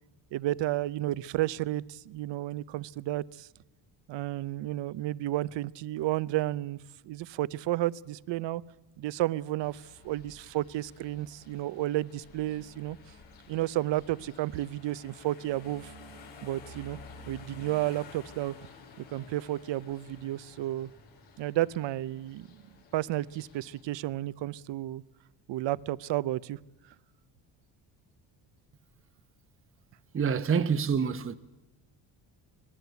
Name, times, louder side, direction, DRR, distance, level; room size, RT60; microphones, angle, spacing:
voice 1, 0.3-3.5 4.1-6.8 7.0-8.6 9.0-13.0 13.5-15.9 16.4-17.0 17.3-18.5 19.1-20.9 21.4-22.6 22.9-25.0 25.5-26.6, right 15 dB, 70° right, 0.8 m, -32 dB
sound 1, 9.6-23.8, left 3 dB, 85° left, 5.2 m, -52 dB
voice 2, 30.1-31.3, right 6 dB, 30° right, 1.0 m, -27 dB
26.0 x 19.5 x 8.2 m
cardioid pair, 110°, 46 cm